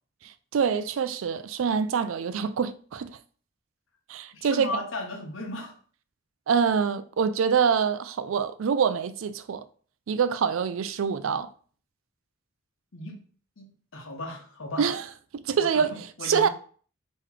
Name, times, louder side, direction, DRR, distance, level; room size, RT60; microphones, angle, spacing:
voice 1, 0.2-3.2 4.1-4.8 6.5-9.7 10.1-11.5 14.8-15.1 15.3-16.5, right 6 dB, 75° right, 0.4 m, -25 dB
voice 2, 4.3-5.7 12.9-13.2 13.6-14.9 15.6-16.5, left 2 dB, 70° left, 1.0 m, -36 dB
4.0 x 3.1 x 4.4 m
head